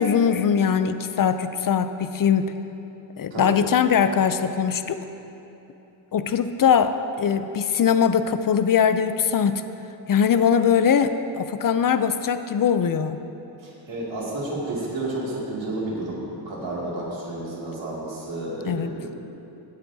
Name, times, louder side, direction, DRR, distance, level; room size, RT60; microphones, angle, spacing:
voice 1, 0.0-2.5 3.2-5.0 6.1-9.6 10.1-13.2 18.6-18.9, left 7 dB, 50° left, 10 dB, 0.4 m, -21 dB
voice 2, 13.6-19.2, right 2 dB, 75° right, -6 dB, 2.4 m, -31 dB
17.0 x 8.2 x 2.7 m, 3.0 s
wide cardioid pair, 135°, 46 cm